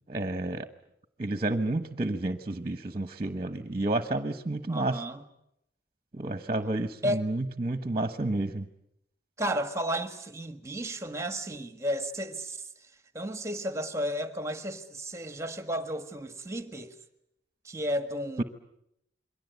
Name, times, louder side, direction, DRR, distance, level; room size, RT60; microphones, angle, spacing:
voice 1, 0.1-0.7 1.2-5.0 6.1-8.7 18.4-18.5, right 2 dB, 35° right, 1.1 m, -30 dB
voice 2, 4.7-5.2 7.0-7.3 9.4-12.9 13.1-16.9 17.6-18.4, equal, 15° right, 1.6 m, -33 dB
28.0 x 22.5 x 8.1 m
head